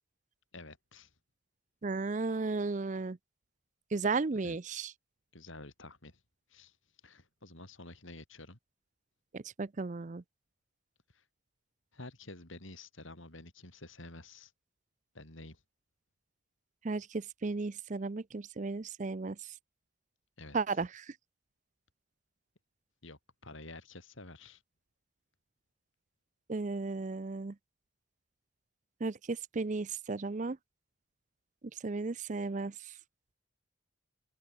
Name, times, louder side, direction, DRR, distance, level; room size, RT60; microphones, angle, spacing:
voice 1, 0.5-1.1 4.4-4.6 5.3-6.2 6.5-6.8 7.0-8.6 11.1-11.2 11.9-14.5 15.1-15.6 20.4-20.9 23.0-24.6, left 2 dB, 70° left, 4.3 m, -50 dB
voice 2, 1.8-3.2 3.9-4.9 9.3-10.2 16.8-19.4 20.5-20.9 26.5-27.5 29.0-30.6 31.8-32.7, right 3 dB, 35° right, 0.5 m, -34 dB
open air
head